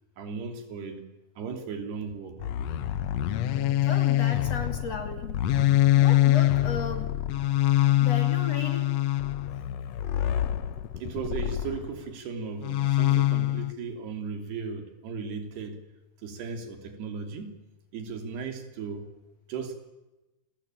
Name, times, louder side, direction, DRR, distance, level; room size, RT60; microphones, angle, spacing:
voice 1, 0.2-1.0 1.4-2.5 11.0-15.8 16.2-17.5 17.9-19.1 19.5-19.9, right 5 dB, 90° right, 6 dB, 5.1 m, -36 dB
sound 1, 2.4-12.0 12.6-13.7, left 13 dB, 80° left, 1.5 m, -25 dB
voice 2, 3.8-5.4 5.9-7.1 8.0-8.9, left 4 dB, 45° left, 7 dB, 3.3 m, -35 dB
29.0 x 22.0 x 9.0 m, 1.1 s
omnidirectional pair, 4.5 m